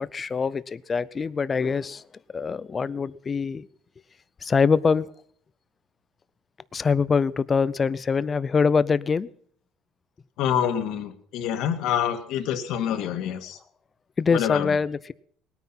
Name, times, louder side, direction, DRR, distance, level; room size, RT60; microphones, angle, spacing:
voice 1, 0.0-2.0 2.3-3.7 4.4-5.1 6.7-9.3 12.9-13.1 14.2-15.1, left 5 dB, 25° left, 18 dB, 0.5 m, -24 dB
voice 2, 10.4-13.6 14.3-14.8, left 9 dB, 65° left, 6 dB, 1.8 m, -26 dB
19.5 x 9.4 x 5.8 m, 0.63 s
cardioid pair, 130°, 0 cm